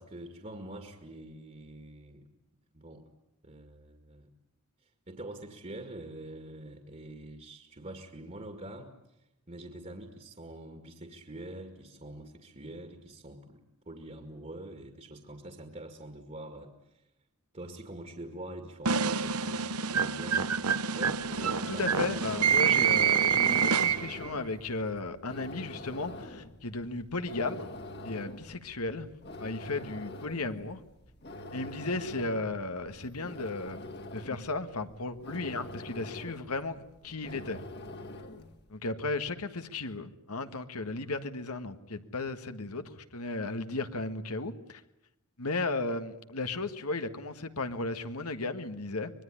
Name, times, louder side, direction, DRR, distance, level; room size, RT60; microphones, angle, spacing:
voice 1, 0.0-2.2 2.7-3.0 3.4-4.3 4.8-8.9 9.2-13.6 13.9-17.0 17.5-21.8 22.1-22.2, right 1 dB, 35° right, 5 dB, 2.1 m, -45 dB
sound 1, 18.9-24.3, right 7 dB, 80° right, 1.0 m, -27 dB
sound 2, 21.0-38.6, left 1 dB, 50° left, 2.2 m, -45 dB
voice 2, 21.7-27.7 28.0-29.1 29.4-30.8 31.5-33.9 34.1-37.6 38.7-44.8 45.4-49.1, left 3 dB, 80° left, 9 dB, 1.7 m, -35 dB
25.0 x 21.5 x 10.0 m, 0.85 s
head